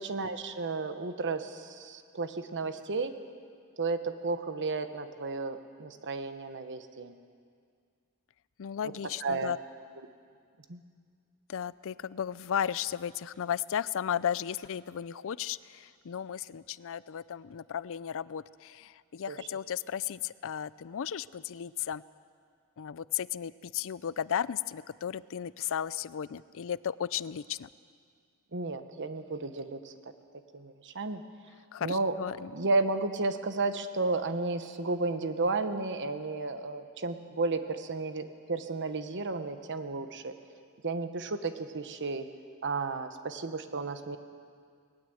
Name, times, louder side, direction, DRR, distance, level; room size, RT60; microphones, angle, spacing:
voice 1, 0.0-3.1 3.8-7.1 8.8-8.9 9.2-9.5 10.7-10.8 19.3-19.4 28.5-29.9 30.5-31.2 31.8-32.2 32.5-40.4 40.8-42.3 42.6-44.2, right 3 dB, 55° right, 9 dB, 1.2 m, -33 dB
voice 2, 8.6-9.6 11.5-22.0 22.8-27.7 31.7-32.5, left 9 dB, 65° left, 19 dB, 0.4 m, -35 dB
20.0 x 19.0 x 7.9 m, 2.1 s
head